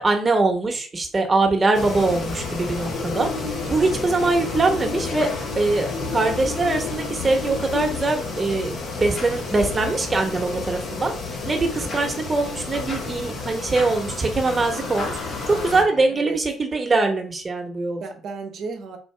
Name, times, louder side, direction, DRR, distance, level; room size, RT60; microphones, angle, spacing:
voice 1, 0.0-5.3 5.5-18.0, right 3 dB, 30° right, 3 dB, 1.1 m, -23 dB
sound 1, 1.7-15.8, left 3 dB, 55° left, 1.2 m, -31 dB
sound 2, 2.9-7.9, left 2 dB, 85° left, 1.1 m, -34 dB
voice 2, 15.5-16.4 17.9-19.0, right 4 dB, 60° right, 5 dB, 0.8 m, -35 dB
4.7 x 2.5 x 3.3 m, 0.39 s
hypercardioid pair, 55°, 0 cm